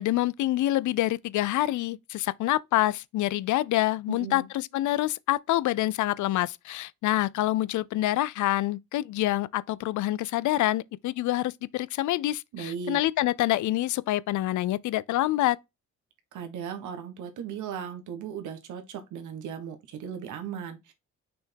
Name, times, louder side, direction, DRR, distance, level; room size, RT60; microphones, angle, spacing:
voice 1, 0.0-15.6, left 15 dB, 75° left, 0.5 m, -26 dB
voice 2, 4.1-4.5 12.5-13.0 16.3-20.9, right 7 dB, 80° right, 1.5 m, -37 dB
6.2 x 3.5 x 4.5 m
cardioid pair, 90°, 30 cm